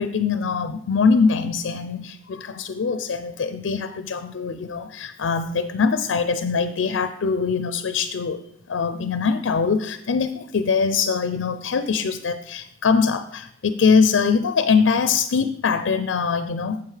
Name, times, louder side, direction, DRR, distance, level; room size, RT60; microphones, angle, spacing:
voice 1, 0.0-16.8, left 5 dB, 90° left, 11 dB, 0.4 m, -22 dB
9.0 x 7.6 x 3.3 m, 0.69 s
head